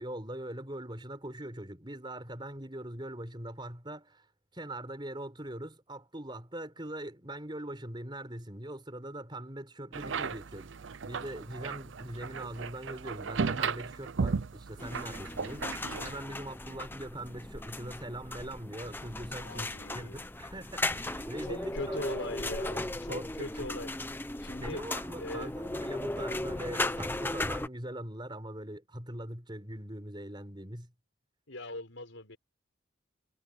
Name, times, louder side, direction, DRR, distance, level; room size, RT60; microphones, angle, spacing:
voice 1, 0.0-4.2 4.5-15.7 16.0-22.2 23.1-23.7 24.6-30.9, right 1 dB, 25° right, 4.4 m, -42 dB
sound 1, 9.9-16.2, right 5 dB, 70° right, 0.6 m, -35 dB
sound 2, 14.8-27.7, left 2 dB, 10° left, 0.7 m, -37 dB
voice 2, 19.4-20.2 21.4-23.9 24.4-24.8 25.2-25.5 31.5-32.4, left 2 dB, 70° left, 5.5 m, -40 dB
head